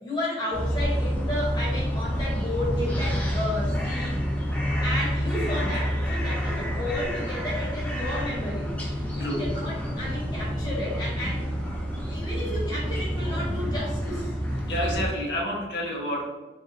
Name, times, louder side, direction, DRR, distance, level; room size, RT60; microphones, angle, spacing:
voice 1, 0.0-4.2 4.8-11.5 12.1-14.3, left 1 dB, 25° left, -5 dB, 0.9 m, -32 dB
sound 1, 0.5-15.1, equal, 10° left, 0.5 m, -28 dB
voice 2, 14.7-16.2, equal, 80° left, -3 dB, 0.9 m, -29 dB
3.6 x 2.7 x 2.7 m, 1.2 s
head